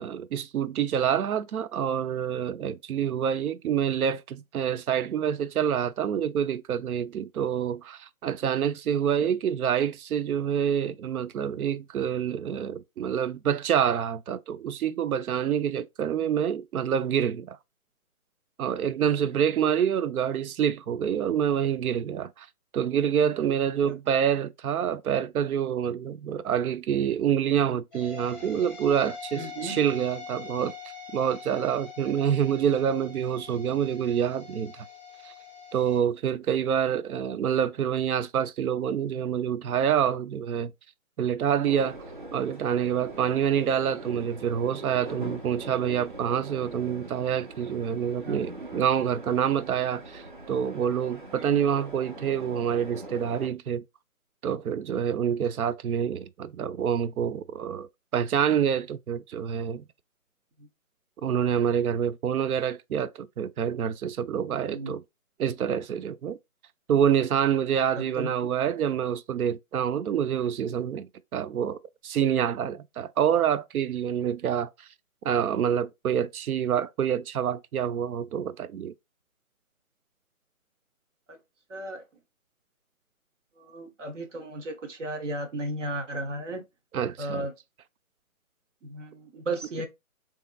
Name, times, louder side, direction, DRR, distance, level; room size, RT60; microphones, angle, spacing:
voice 1, 0.0-17.6 18.6-22.5 22.7-30.7 31.1-34.9 35.2-35.3 35.7-40.7 41.2-42.0 42.3-53.8 54.4-59.8 61.2-65.0 65.4-66.4 66.9-71.8 72.0-74.7 75.2-78.9 86.9-87.5, right 8 dB, 85° right, 0.5 m, -27 dB
sound 1, 27.9-36.0, left 5 dB, 5° left, 1.0 m, -43 dB
voice 2, 29.3-29.8 43.6-43.7 48.2-48.4 51.3-51.6 60.6-60.7 64.7-65.0 68.0-68.3 81.7-82.0 83.6-86.6 87.2-87.5 88.8-89.9, right 1 dB, 60° right, 1.1 m, -35 dB
sound 2, 41.7-53.5, right 2 dB, 35° right, 0.5 m, -42 dB
3.4 x 2.8 x 2.3 m
hypercardioid pair, 170°, 42 cm